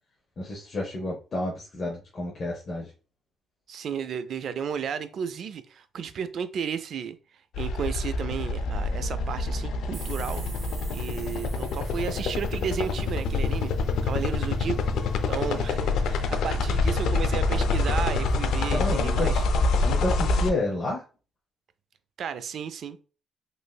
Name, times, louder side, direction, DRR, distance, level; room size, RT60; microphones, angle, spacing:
voice 1, 0.4-2.9 18.7-19.3 19.8-21.0, left 2 dB, 45° left, -2 dB, 0.7 m, -30 dB
voice 2, 3.7-7.2 7.6-10.4 10.9-13.7 14.0-14.8 15.3-19.4 22.2-23.0, right 7 dB, 65° right, 12 dB, 0.3 m, -33 dB
sound 1, 7.5-20.5, left 3 dB, 80° left, 0.4 m, -26 dB
Boat Water vehicle, 9.7-18.5, right 1 dB, 30° right, 1.6 m, -45 dB
sound 2, 9.9-14.6, right 5 dB, 80° right, 0.7 m, -48 dB
3.1 x 2.6 x 2.2 m, 0.36 s
cardioid pair, 90°, 0 cm